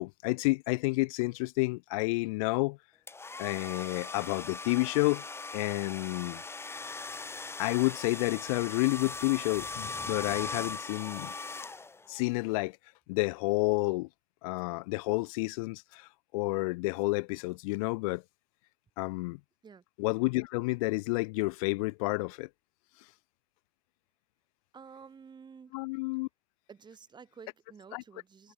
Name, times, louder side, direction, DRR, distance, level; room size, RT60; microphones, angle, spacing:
voice 1, 0.0-2.8 3.4-5.2 5.5-6.4 7.6-11.3 12.1-12.8 13.1-14.1 14.4-16.1 16.3-18.2 19.0-19.4 20.0-22.5 25.7-26.3 27.9-28.0, left 26 dB, 75° left, 0.8 m, -30 dB
sound 1, 3.1-12.2, left 3 dB, 15° left, 3.4 m, -40 dB
voice 2, 24.7-25.8 26.7-28.5, right 6 dB, 25° right, 4.8 m, -51 dB
supercardioid pair, 110°, 18 cm